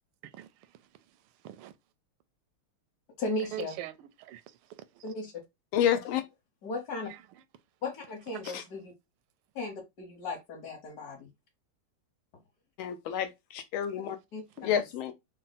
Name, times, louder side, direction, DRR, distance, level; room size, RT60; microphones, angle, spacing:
voice 1, 0.2-1.7 3.5-5.0 7.1-7.4 8.3-8.5 14.7-14.8, right 14 dB, 85° right, 1.4 m, -44 dB
voice 2, 3.2-3.7 5.0-5.3 6.6-7.1 7.8-8.8 9.5-11.3 14.3-14.4 14.7-14.8, left 2 dB, 50° left, 1.4 m, -36 dB
voice 3, 5.7-6.2 8.5-8.6 12.8-14.2 14.6-15.1, left 9 dB, 75° left, 1.4 m, -29 dB
3.9 x 2.2 x 4.0 m
omnidirectional pair, 2.3 m